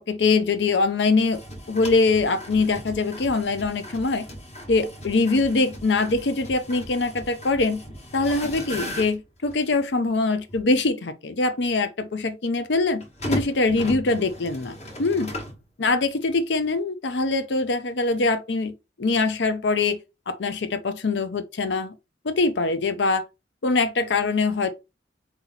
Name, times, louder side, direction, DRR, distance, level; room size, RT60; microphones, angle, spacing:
voice 1, 0.0-1.4 1.7-4.2 4.7-7.8 8.1-14.7 15.0-15.3 15.8-18.7 19.0-20.0 20.3-21.9 22.2-23.2 23.6-24.7, left 3 dB, 65° left, 0.6 m, -23 dB
sound 1, 1.3-9.8 10.5-10.6 13.0-15.6, equal, 35° left, 1.1 m, -37 dB
4.0 x 2.8 x 3.9 m
head